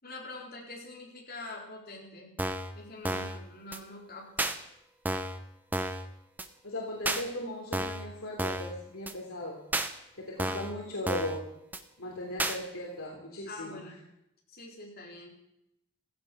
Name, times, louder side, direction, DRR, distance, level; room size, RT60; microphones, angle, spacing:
voice 1, 0.0-2.3 2.7-4.5 10.4-10.6 13.5-14.0 14.5-15.3, left 2 dB, 45° left, -2 dB, 4.1 m, -45 dB
sound 1, 2.4-2.7 3.0-3.4 3.7-3.8 4.4-4.5 5.1-5.4 5.7-6.0 6.4-6.5 7.1-7.2 7.7-8.1 8.4-8.7 9.1-9.2 9.7-9.9 10.4-10.7 11.1-11.4 11.7-11.8 12.4-12.6, right 1 dB, 10° right, 0.8 m, -31 dB
voice 2, 6.6-9.6 10.1-11.4 12.0-13.8, left 1 dB, 75° left, -2 dB, 3.2 m, -38 dB
16.0 x 14.5 x 6.0 m, 0.83 s
head